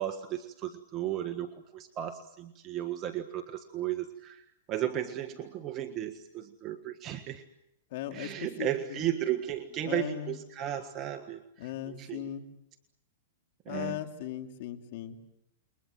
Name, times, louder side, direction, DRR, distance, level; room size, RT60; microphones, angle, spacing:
voice 1, 0.0-7.4 8.1-12.3 13.6-14.0, right 11 dB, 30° right, 6 dB, 1.6 m, -35 dB
voice 2, 7.9-9.0 9.8-10.3 11.6-12.5 13.7-15.2, left 11 dB, 55° left, 6 dB, 2.9 m, -38 dB
29.0 x 23.0 x 7.7 m, 0.84 s
hypercardioid pair, 140°, 0 cm